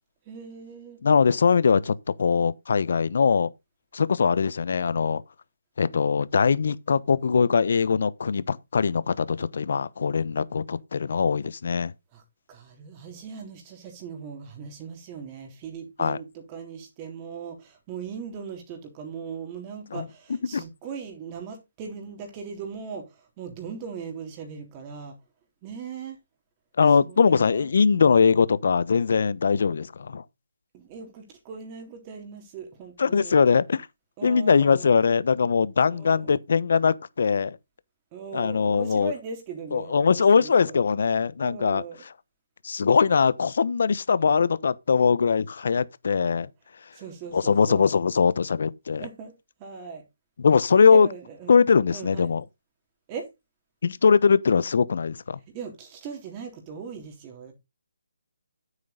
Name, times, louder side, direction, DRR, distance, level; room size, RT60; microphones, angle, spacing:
voice 1, 0.3-1.0 12.1-12.2 12.5-25.1 25.6-26.2 27.0-28.2 30.7-33.4 34.2-35.0 35.9-36.3 38.1-40.7 41.4-42.0 46.9-47.9 49.0-49.3 49.6-50.0 50.9-51.5 51.9-52.3 53.1-53.3 55.5-57.5, right 6 dB, 20° right, 3.5 m, -39 dB
voice 2, 1.0-3.5 3.9-5.2 5.8-11.9 16.0-16.2 19.9-20.0 20.5-20.6 26.8-30.2 33.0-33.9 34.2-37.6 38.3-39.1 39.7-41.8 42.6-46.5 47.3-49.0 50.4-51.1 51.5-52.4 53.8-55.4, left 5 dB, 55° left, 1.0 m, -21 dB
9.7 x 8.5 x 4.0 m
hypercardioid pair, 165°, 0 cm